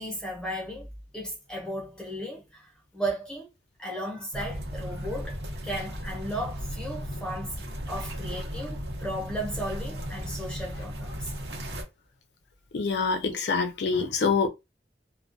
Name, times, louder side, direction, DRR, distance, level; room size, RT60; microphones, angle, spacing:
voice 1, 0.0-3.5 3.8-5.4 5.6-7.6 7.9-11.3, right 1 dB, 5° left, 0.7 m, -35 dB
sound 1, 4.3-11.8, equal, 75° right, 0.7 m, -36 dB
voice 2, 12.7-14.5, left 5 dB, 75° left, 0.4 m, -25 dB
2.2 x 2.2 x 2.5 m
head